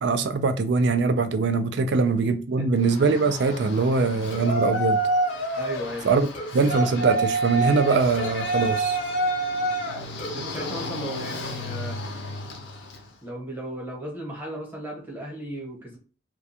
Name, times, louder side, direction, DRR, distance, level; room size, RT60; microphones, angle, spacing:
voice 1, 0.0-5.0 6.0-6.3 6.5-9.0, right 4 dB, 65° right, 0.4 m, -22 dB
Yell, 2.8-13.1, right 1 dB, 85° left, 0.6 m, -28 dB
sound 1, 4.3-5.9 6.3-9.7 10.2-12.1, equal, 45° left, 0.5 m, -42 dB
voice 2, 5.6-6.1 10.3-12.0 13.2-16.0, right 1 dB, 10° right, 1.0 m, -35 dB
2.3 x 2.2 x 2.7 m
head